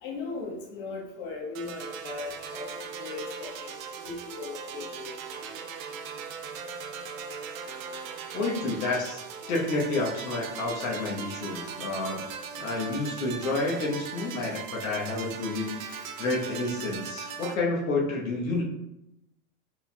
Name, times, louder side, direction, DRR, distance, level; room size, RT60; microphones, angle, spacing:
voice 1, 0.0-5.1 15.9-16.0, left 3 dB, 50° left, -1 dB, 1.2 m, -38 dB
sound 1, 1.5-17.5, right 6 dB, 75° right, 0.7 m, -39 dB
voice 2, 8.3-9.2 9.5-12.3 12.6-18.6, left 2 dB, 80° left, -2 dB, 1.1 m, -30 dB
4.5 x 3.8 x 2.2 m, 0.88 s
supercardioid pair, 130°, 41 cm